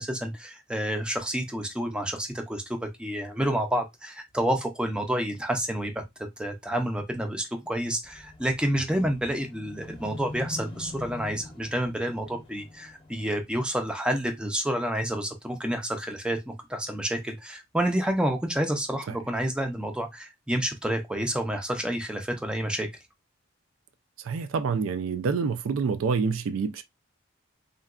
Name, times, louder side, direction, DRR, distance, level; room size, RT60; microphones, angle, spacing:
voice 1, 0.0-6.1 6.4-22.9, right 1 dB, 5° right, 0.4 m, -29 dB
sound 1, 8.0-13.4, left 2 dB, 25° left, 0.8 m, -43 dB
voice 2, 24.2-26.8, right 5 dB, 80° right, 0.4 m, -27 dB
3.7 x 2.2 x 2.3 m
head